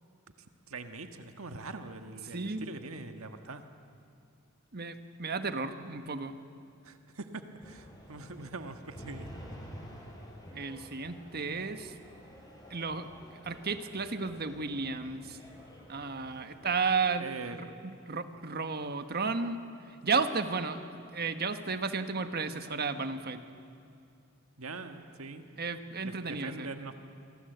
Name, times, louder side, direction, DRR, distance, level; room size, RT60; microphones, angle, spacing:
voice 1, 0.7-3.6 6.8-9.3 9.6-9.7 17.2-17.6 24.6-25.4 26.0-26.9, right 3 dB, 80° right, 7 dB, 1.5 m, -43 dB
voice 2, 2.3-2.7 4.7-6.3 10.5-11.9 12.7-13.1 13.4-15.4 15.9-19.6 20.0-23.4 25.6-26.7, right 4 dB, 50° right, 8 dB, 1.4 m, -33 dB
sound 1, 7.6-16.7, equal, 20° left, 5.4 m, -50 dB
27.5 x 24.0 x 8.1 m, 2.4 s
head